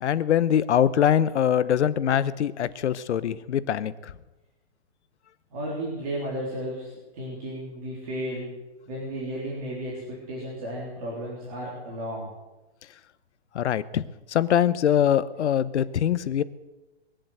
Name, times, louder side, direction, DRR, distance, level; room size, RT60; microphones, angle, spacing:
voice 1, 0.0-3.9 13.5-14.0 14.3-16.4, left 9 dB, 90° left, 16 dB, 0.9 m, -23 dB
voice 2, 5.5-8.5 8.9-12.3, right 1 dB, 35° right, -6 dB, 3.6 m, -33 dB
21.0 x 7.7 x 7.9 m, 1.1 s
hypercardioid pair, 175°, 33 cm